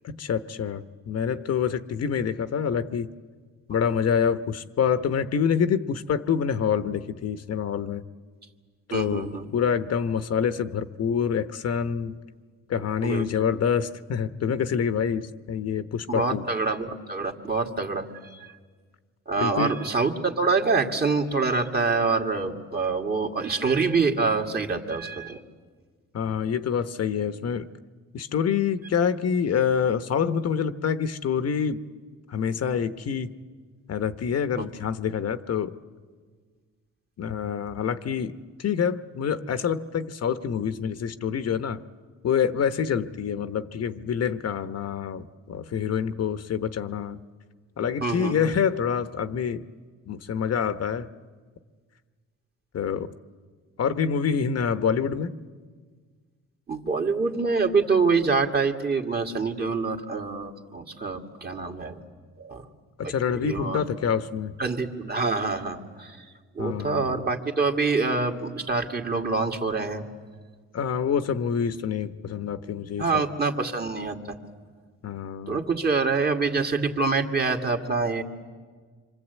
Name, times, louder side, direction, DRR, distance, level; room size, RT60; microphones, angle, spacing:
voice 1, 0.0-3.1 3.7-8.0 8.9-12.2 12.7-16.4 19.4-19.8 26.1-27.7 28.1-31.8 32.3-33.4 33.9-35.8 37.2-41.8 42.2-47.2 47.8-49.6 50.1-51.1 52.7-53.1 53.8-55.4 63.0-64.5 66.6-67.3 70.7-73.2 75.0-75.6, left 7 dB, 55° left, 10 dB, 1.0 m, -26 dB
voice 2, 8.9-9.5 13.0-13.2 16.1-18.5 19.3-25.4 34.6-34.7 48.0-48.5 56.7-62.0 62.4-62.7 63.0-63.8 64.6-66.3 66.6-70.0 73.0-74.4 75.5-78.2, right 4 dB, 30° right, 3 dB, 2.4 m, -26 dB
26.0 x 25.0 x 8.3 m, 1.5 s
cardioid pair, 90°, 30 cm